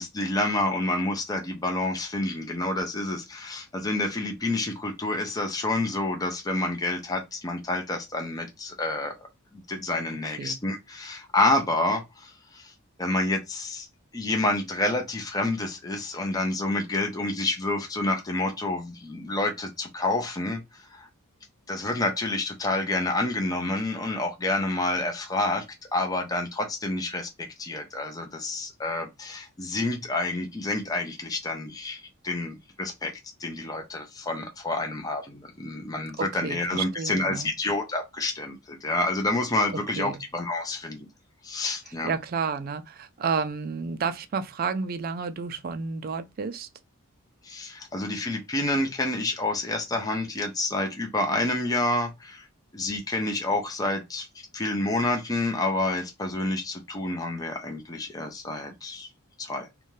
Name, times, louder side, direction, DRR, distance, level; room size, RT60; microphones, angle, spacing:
voice 1, 0.0-9.3 9.5-12.7 13.0-13.9 14.1-21.1 21.7-25.6 25.9-33.1 33.4-41.1 41.4-42.1 47.4-52.5 52.7-54.3 54.5-59.1 59.4-59.7, left 2 dB, 15° left, 0.5 m, -28 dB
voice 2, 10.2-10.6 36.2-37.5 39.7-40.2 42.0-46.7, right 5 dB, 40° right, 0.3 m, -31 dB
2.6 x 2.2 x 3.0 m
head